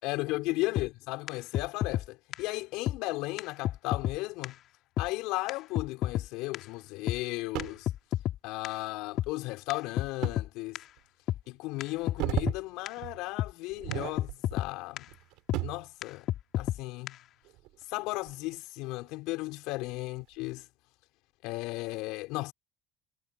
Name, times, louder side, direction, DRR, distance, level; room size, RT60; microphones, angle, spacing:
voice 1, 0.0-4.5 5.0-7.9 8.4-10.8 11.5-15.1 15.6-16.3 16.6-17.2 17.9-20.7 21.4-22.5, left 21 dB, 75° left, 5.9 m, -35 dB
sound 1, 0.8-0.9 1.3-1.4 1.5-2.1 2.3-2.4 2.9-3.0 3.4-3.5 3.6-4.2 4.4-4.5 5.0-5.1 5.5-5.6 5.8-6.3 6.5-6.6 7.1-7.2 7.6-8.4 8.6-8.7 9.2-9.3 9.7-9.8 10.0-10.5 10.8-10.9 11.3-11.4 11.8-11.9 12.1-12.6 12.9-13.0 13.4-13.5 13.9-14.0 14.2-14.7 15.0-15.1 15.5-15.6 16.0-16.1 16.3-16.8 17.1-17.2, left 13 dB, 55° left, 3.4 m, -30 dB
sound 2, 7.5-7.9 10.2-10.4 11.0-11.1 11.9-12.6 13.0-13.2 13.7-14.6 15.0-15.9 17.4-18.6 19.0-19.1 19.8-20.2, right 20 dB, 75° right, 6.3 m, -36 dB
cardioid pair, 130°, 0 cm